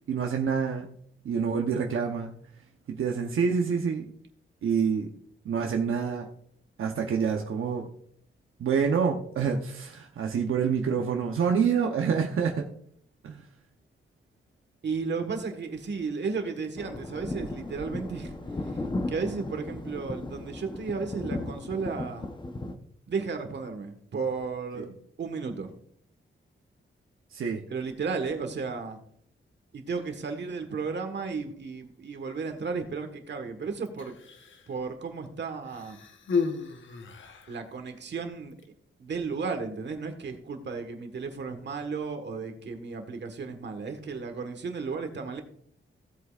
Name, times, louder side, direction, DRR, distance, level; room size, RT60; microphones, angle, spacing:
voice 1, 0.1-0.9 1.2-2.3 2.9-4.1 4.6-5.1 5.4-6.3 6.8-7.9 8.6-12.7 13.2-13.4 24.8-24.9 27.3-27.6, right 6 dB, 80° right, 2 dB, 0.9 m, -27 dB
voice 2, 14.8-18.3 19.1-22.3 23.1-24.9 25.2-25.7 27.7-29.0 29.7-34.1 34.7-36.0 37.5-38.5 39.0-45.4, right 4 dB, 60° right, 6 dB, 1.5 m, -34 dB
sound 1, 16.8-22.7, left 2 dB, 20° left, 0.9 m, -36 dB
Human voice, 33.9-34.7 35.6-37.6 38.5-38.7, left 5 dB, 65° left, 1.1 m, -33 dB
16.0 x 8.2 x 2.5 m, 0.64 s
wide cardioid pair, 140°, 21 cm